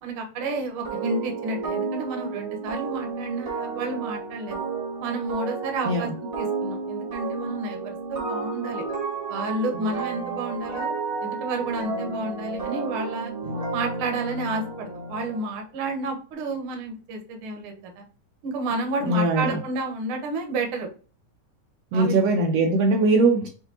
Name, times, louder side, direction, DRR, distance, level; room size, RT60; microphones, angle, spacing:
voice 1, 0.0-4.6 5.0-6.1 6.4-8.8 9.3-10.9 11.2-13.3 13.7-18.0 18.4-20.9 21.9-22.2, right 2 dB, 65° right, 3 dB, 1.4 m, -30 dB
sound 1, 0.8-15.5, right 4 dB, 35° right, 0.9 m, -32 dB
voice 2, 19.0-19.6 21.9-23.5, right 2 dB, 85° right, 1 dB, 1.4 m, -21 dB
7.4 x 2.6 x 2.7 m, 0.38 s
omnidirectional pair, 3.6 m